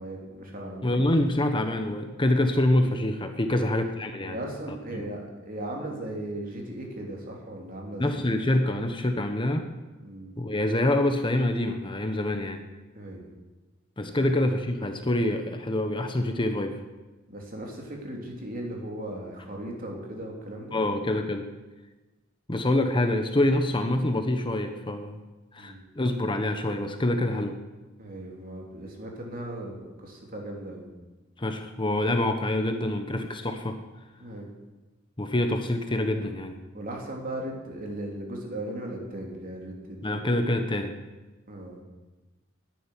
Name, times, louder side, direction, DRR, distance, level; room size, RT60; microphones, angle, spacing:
voice 1, 0.0-0.9 3.4-3.6 4.2-8.0 10.0-10.3 12.9-13.3 14.1-14.3 17.3-20.8 25.6-25.9 28.0-30.9 34.2-34.5 36.7-40.7 41.5-41.8, right 1 dB, 45° right, 0 dB, 3.2 m, -37 dB
voice 2, 0.8-4.4 4.7-5.1 8.0-9.7 10.4-12.6 14.0-16.8 20.7-21.5 22.5-25.2 25.5-27.6 31.4-33.8 35.2-36.6 40.0-40.9, left 1 dB, 25° left, 6 dB, 1.0 m, -26 dB
10.5 x 10.5 x 9.8 m, 1.2 s
head